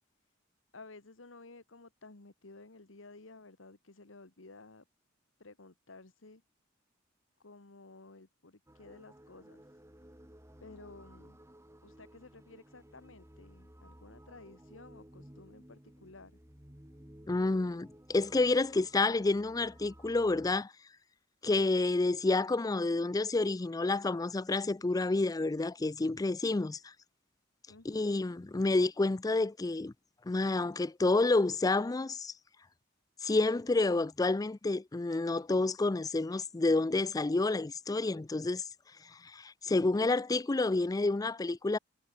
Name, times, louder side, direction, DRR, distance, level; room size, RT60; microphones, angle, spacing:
voice 1, 0.7-4.8 5.4-6.4 7.4-9.8 10.6-11.4 11.8-16.4 27.7-28.1, left 3 dB, 80° left, 1.7 m, -54 dB
sound 1, 8.7-20.6, equal, 15° right, 3.2 m, -56 dB
voice 2, 17.3-20.7 21.4-26.9 27.8-29.9 30.3-32.3 33.2-38.6 39.1-41.8, left 2 dB, 20° left, 0.4 m, -29 dB
head